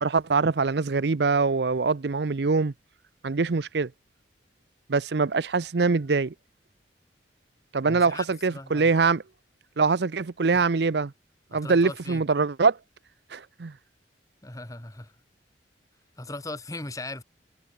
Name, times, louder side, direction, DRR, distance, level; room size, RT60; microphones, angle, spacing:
voice 1, 0.0-2.7 3.2-3.9 4.9-6.3 7.7-9.2 9.8-11.1 11.5-12.8 13.3-13.7, right 4 dB, 65° right, 0.6 m, -23 dB
voice 2, 7.8-8.3 8.5-8.9 11.5-12.2 14.4-15.1 16.2-17.2, left 2 dB, 20° left, 1.6 m, -38 dB
head